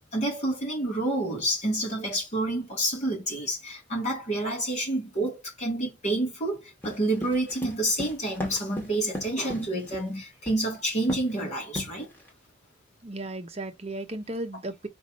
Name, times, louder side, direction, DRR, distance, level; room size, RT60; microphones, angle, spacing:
voice 1, 0.1-12.1, right 1 dB, 40° left, 3.2 m, -28 dB
sound 1, 6.8-10.1 10.5-10.8 11.1-11.4 11.8-12.3, left 1 dB, 10° left, 2.3 m, -36 dB
voice 2, 13.0-14.9, right 2 dB, 35° right, 0.9 m, -35 dB
5.2 x 3.6 x 5.2 m
head